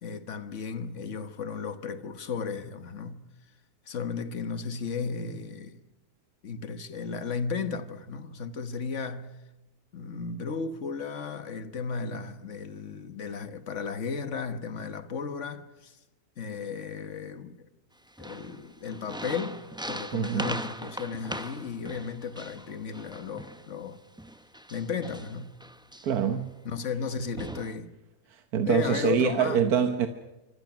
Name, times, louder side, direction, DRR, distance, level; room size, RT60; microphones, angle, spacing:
voice 1, 0.0-3.2 3.9-5.8 6.4-9.4 9.9-16.0 16.4-17.7 18.2-24.0 24.7-25.5 26.6-27.9 28.6-29.6, left 5 dB, 50° left, 1.5 m, -34 dB
sound 1, 18.1-23.7 24.2-26.3 27.0-27.1 27.4-27.8, right 1 dB, 5° right, 0.3 m, -40 dB
voice 2, 20.1-20.6 26.0-26.5 28.3-30.1, right 8 dB, 70° right, 1.5 m, -25 dB
26.5 x 24.5 x 6.0 m
omnidirectional pair, 1.7 m